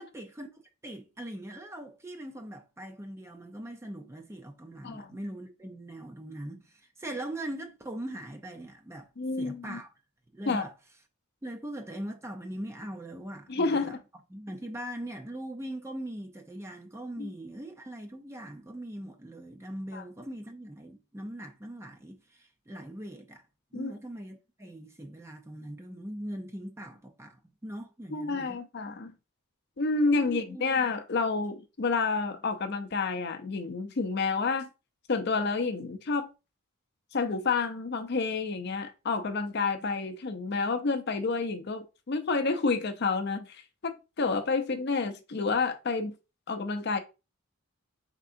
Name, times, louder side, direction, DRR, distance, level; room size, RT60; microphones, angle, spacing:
voice 1, 0.0-9.1 9.4-9.9 10.3-10.7 11.4-14.0 14.3-23.4 23.7-28.6 30.1-30.9, right 1 dB, 10° right, 0.4 m, -41 dB
voice 2, 9.2-9.8 10.5-10.7 13.5-14.0 17.2-17.3 19.9-20.0 23.7-23.9 28.1-29.1 29.8-34.7 35.1-36.3 37.1-46.1 46.5-47.0, left 4 dB, 50° left, 0.5 m, -29 dB
4.6 x 3.6 x 2.5 m
head